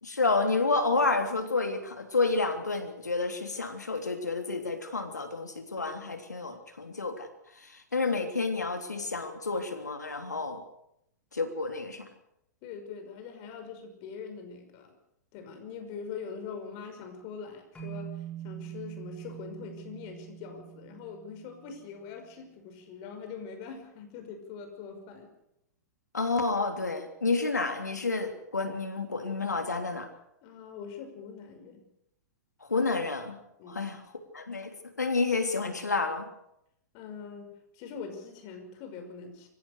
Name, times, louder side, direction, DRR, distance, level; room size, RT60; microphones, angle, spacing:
voice 1, 0.0-7.3 7.6-10.6 11.3-12.1 26.1-30.1 32.6-33.4 33.7-34.0 34.3-36.3, left 3 dB, 90° left, 6 dB, 3.3 m, -30 dB
voice 2, 12.6-14.9 15.3-25.3 30.4-31.9 33.6-33.8 36.9-39.5, left 6 dB, 40° left, 6 dB, 5.8 m, -43 dB
sound 1, 17.7-22.0, right 12 dB, 15° left, 5.8 m, -43 dB
26.5 x 15.5 x 6.8 m, 0.79 s
figure-of-eight pair, 110°, 9 cm